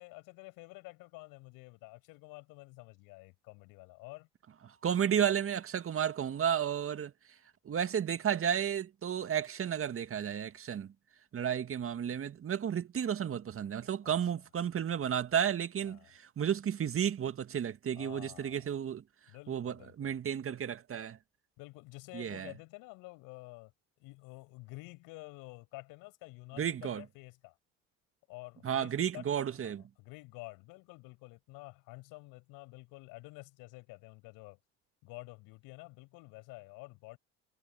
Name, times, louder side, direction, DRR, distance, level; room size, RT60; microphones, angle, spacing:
voice 1, 0.0-4.3 14.0-14.2 15.8-16.1 17.9-18.7 19.3-20.1 21.6-23.7 24.0-27.5 28.3-29.3 29.6-34.6 35.0-37.2, left 24 dB, 70° left, 6.0 m, -50 dB
voice 2, 4.8-7.1 7.7-10.9 11.3-19.0 19.5-21.2 22.1-22.5 26.6-27.0 28.6-29.8, right 8 dB, 40° right, 1.9 m, -32 dB
hypercardioid pair, 75°, 35 cm